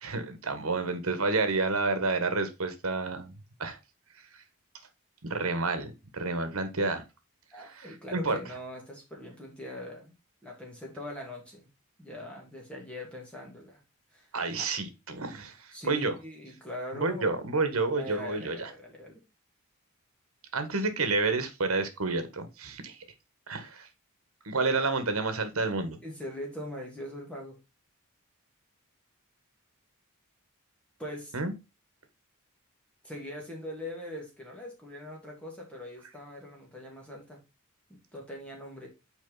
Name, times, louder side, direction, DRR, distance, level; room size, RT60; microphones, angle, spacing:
voice 1, 0.0-3.3 3.6-3.8 5.2-7.0 7.6-8.4 14.3-16.1 16.9-18.7 20.5-23.0 23.5-23.9 24.4-26.0 31.3-31.5, right 3 dB, 70° right, 9 dB, 1.5 m, -30 dB
voice 2, 7.5-10.1 10.4-11.7 12.0-13.8 14.1-14.3 15.7-17.4 18.0-19.2 26.0-27.6 31.0-31.3 33.0-37.4 37.9-38.9, left 1 dB, 5° left, -1 dB, 2.6 m, -41 dB
6.3 x 5.0 x 3.9 m, 0.26 s
head